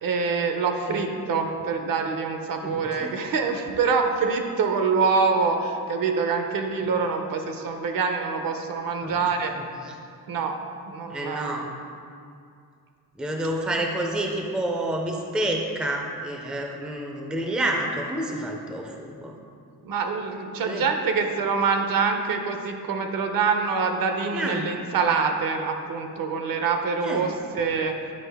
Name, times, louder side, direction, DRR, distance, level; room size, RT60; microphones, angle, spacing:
voice 1, 0.0-9.5 10.3-10.5 10.9-11.5 19.8-27.9, right 5 dB, 65° right, 5 dB, 0.7 m, -25 dB
voice 2, 2.6-3.2 9.0-9.9 11.1-11.7 13.2-19.4 20.6-20.9 24.3-24.7 27.0-27.3, right 1 dB, 5° right, 1 dB, 0.4 m, -29 dB
8.6 x 4.7 x 3.4 m, 2.4 s
wide cardioid pair, 170°, 37 cm